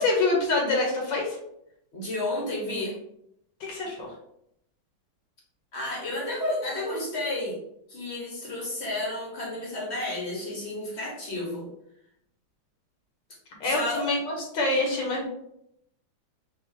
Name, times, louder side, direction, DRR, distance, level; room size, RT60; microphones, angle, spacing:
voice 1, 0.0-1.4 3.6-4.1 13.6-15.3, left 2 dB, 70° left, -1 dB, 1.6 m, -26 dB
voice 2, 1.9-3.0 5.7-7.6 7.9-11.7 13.6-14.1, left 1 dB, 40° left, -3 dB, 1.0 m, -31 dB
5.4 x 2.4 x 2.7 m, 0.75 s
omnidirectional pair, 2.2 m